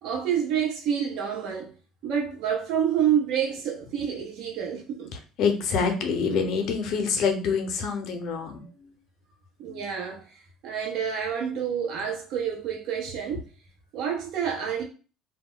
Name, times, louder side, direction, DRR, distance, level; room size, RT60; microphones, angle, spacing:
voice 1, 0.0-1.7 2.0-5.1 9.6-13.4 13.9-14.8, right 8 dB, 65° right, 0.7 m, -28 dB
voice 2, 5.4-8.6, left 5 dB, 60° left, 0.7 m, -26 dB
2.2 x 2.1 x 3.7 m
supercardioid pair, 80°, 0 cm